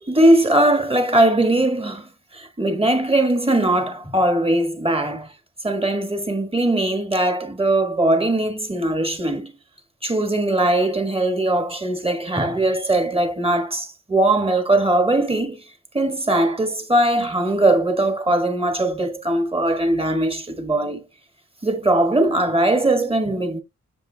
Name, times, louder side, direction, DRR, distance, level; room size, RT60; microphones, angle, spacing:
voice 1, 0.0-5.3 5.6-9.5 10.0-15.6 15.9-21.1 21.6-23.6, right 1 dB, 20° right, 1.5 m, -20 dB
7.7 x 7.3 x 2.2 m
wide cardioid pair, 130°, 29 cm